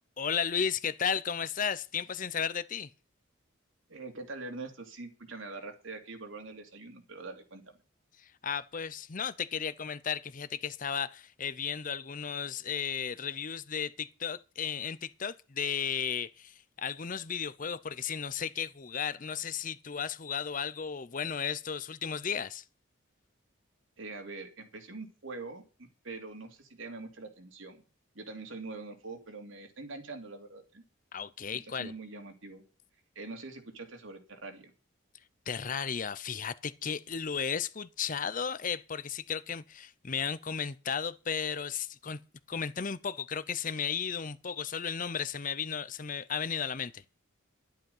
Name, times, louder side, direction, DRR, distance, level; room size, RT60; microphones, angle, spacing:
voice 1, 0.2-2.9 8.2-22.6 31.1-31.9 35.5-42.2 42.5-47.0, left 7 dB, 40° left, 0.6 m, -34 dB
voice 2, 3.9-7.8 24.0-27.8 28.1-30.8 31.5-32.6 33.1-34.7, right 3 dB, 70° right, 2.7 m, -44 dB
11.5 x 10.5 x 5.5 m
head